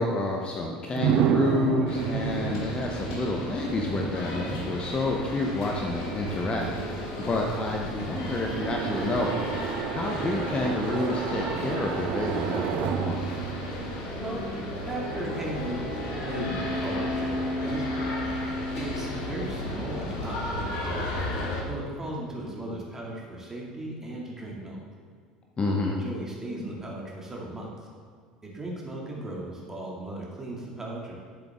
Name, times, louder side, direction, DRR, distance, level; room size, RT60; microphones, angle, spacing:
voice 1, 0.0-9.3 9.9-13.2 25.6-26.0, left 2 dB, 25° left, 0 dB, 1.0 m, -29 dB
sound 1, 1.0-14.8, right 10 dB, 45° right, 0.4 m, -32 dB
sound 2, 1.9-21.6, left 1 dB, 55° left, 1.9 m, -33 dB
voice 2, 14.9-15.8 16.1-18.3 18.8-21.0 21.7-24.8 25.9-27.7 28.4-31.1, right 1 dB, 15° right, -3 dB, 2.6 m, -36 dB
10.5 x 7.8 x 3.7 m, 2.1 s
figure-of-eight pair, 70°, 4 cm